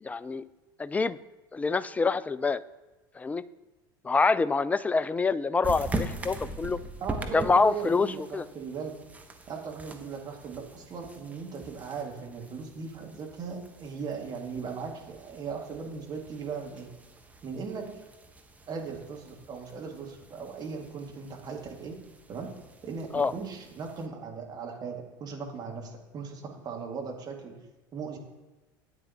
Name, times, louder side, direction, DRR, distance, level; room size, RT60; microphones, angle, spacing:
voice 1, 0.0-0.4 0.8-1.2 1.5-2.6 3.2-3.4 4.0-6.8 7.3-8.4 23.1-23.3, left 4 dB, 15° left, 17 dB, 0.3 m, -26 dB
sound 1, 5.6-24.1, right 2 dB, 15° right, 1.1 m, -42 dB
voice 2, 7.0-9.0 9.5-16.9 17.4-17.9 18.7-22.0 22.3-22.5 22.8-27.6 27.9-28.2, right 5 dB, 35° right, 0 dB, 2.0 m, -38 dB
12.5 x 9.0 x 2.9 m, 1.1 s
figure-of-eight pair, 70°, 12 cm